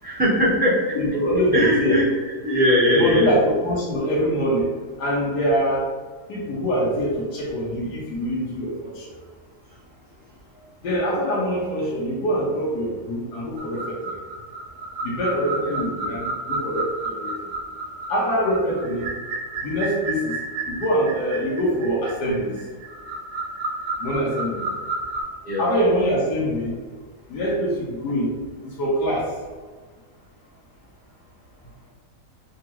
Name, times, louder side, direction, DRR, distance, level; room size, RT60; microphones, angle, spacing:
voice 1, 0.0-0.8 1.5-2.1 2.4-3.3 15.6-15.8 25.4-25.6, left 1 dB, 10° right, -10 dB, 0.6 m, -19 dB
voice 2, 0.9-2.0 2.9-4.7 5.0-5.8 6.3-9.2 10.8-14.2 15.0-17.4 18.1-19.1 19.6-20.3 20.7-22.6 24.0-24.6 25.6-26.8 27.3-28.3 28.6-29.3, equal, 80° left, -5 dB, 1.3 m, -24 dB
sound 1, 13.6-25.2, right 2 dB, 90° right, 1.2 m, -31 dB
3.6 x 2.3 x 2.9 m, 1.4 s
omnidirectional pair, 1.8 m